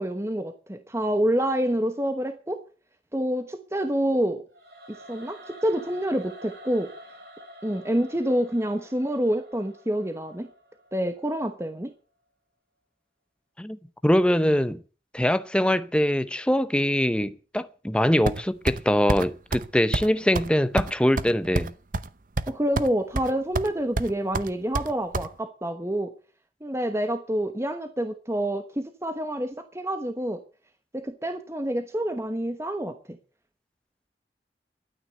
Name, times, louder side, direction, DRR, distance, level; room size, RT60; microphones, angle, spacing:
voice 1, 0.0-2.6 3.1-4.4 4.9-6.9 7.6-10.5 10.9-11.9 22.5-26.1 26.6-30.4 30.9-33.2, right 1 dB, 15° right, 1.0 m, -27 dB
Singing / Musical instrument, 4.5-11.6, equal, 65° right, 4.2 m, -48 dB
voice 2, 13.6-14.8 15.1-21.7, equal, 5° left, 0.7 m, -23 dB
sound 1, 18.3-18.8 19.1-19.3 19.5-19.7 19.9-20.1 20.4-20.5 20.8-22.1 22.4-22.9 23.2-23.7 24.0-25.3, right 2 dB, 50° right, 0.7 m, -27 dB
12.5 x 9.7 x 7.9 m
head